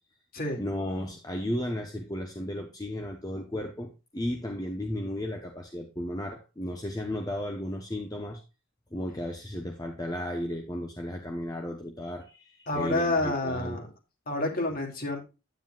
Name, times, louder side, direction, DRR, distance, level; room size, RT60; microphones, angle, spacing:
voice 1, 0.6-8.4 8.9-13.8, left 1 dB, 15° left, 3 dB, 1.0 m, -34 dB
voice 2, 12.7-13.9 14.3-15.2, left 2 dB, 40° left, 2 dB, 2.6 m, -29 dB
10.0 x 9.4 x 2.4 m, 0.29 s
head